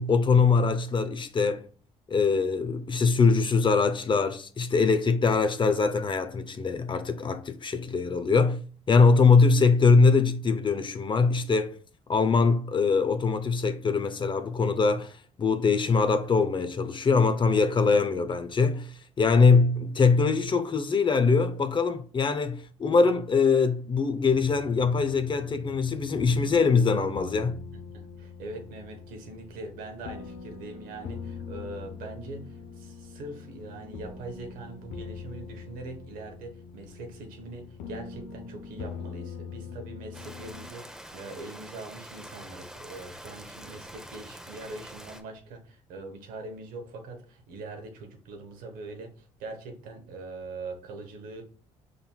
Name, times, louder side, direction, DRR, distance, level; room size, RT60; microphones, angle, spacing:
voice 1, 0.0-1.7 2.1-8.6 8.9-11.8 12.1-27.6, left 4 dB, 35° left, 0.7 m, -23 dB
sound 1, 24.3-40.7, left 5 dB, 75° left, 0.8 m, -43 dB
voice 2, 27.9-51.4, right 2 dB, 80° right, 1.1 m, -42 dB
Rain, 40.1-45.2, equal, 5° right, 0.8 m, -45 dB
5.4 x 3.9 x 2.3 m
supercardioid pair, 65°, 14 cm